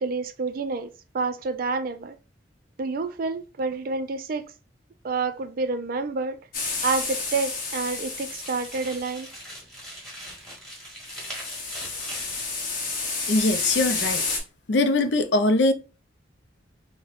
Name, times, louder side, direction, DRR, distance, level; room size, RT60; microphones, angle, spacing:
voice 1, 0.0-2.2 2.8-4.5 5.0-6.4 6.8-9.3, right 4 dB, 50° right, 0.3 m, -28 dB
sound 1, 6.5-9.1 11.1-14.4, left 3 dB, 50° left, 1.0 m, -30 dB
sound 2, 7.5-12.6, equal, ahead, 1.2 m, -42 dB
voice 2, 13.3-14.2 14.7-15.7, left 2 dB, 65° left, 0.5 m, -21 dB
5.5 x 2.1 x 2.5 m
head